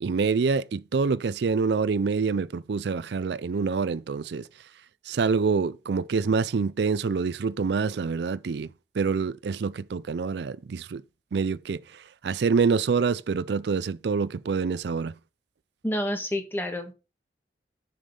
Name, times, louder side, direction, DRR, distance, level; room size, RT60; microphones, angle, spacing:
voice 1, 0.0-4.5 5.1-8.7 9.0-11.0 11.3-15.1, right 5 dB, 75° right, 0.4 m, -26 dB
voice 2, 15.8-16.9, left 1 dB, 10° left, 1.6 m, -29 dB
7.2 x 7.1 x 5.2 m
head